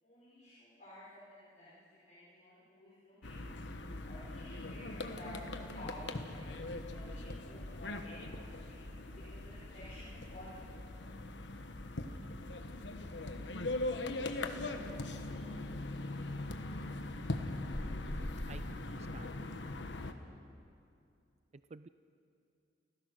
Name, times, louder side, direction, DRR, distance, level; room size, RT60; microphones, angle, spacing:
voice 1, 0.0-3.4 4.1-10.7, left 1 dB, 40° left, -10 dB, 5.5 m, -53 dB
sound 1, 3.2-20.1, left 2 dB, 80° left, 1.3 m, -41 dB
voice 2, 18.0-19.3 21.7-21.9, right 3 dB, 35° right, 13 dB, 0.4 m, -52 dB
29.0 x 15.5 x 6.6 m, 2.5 s
head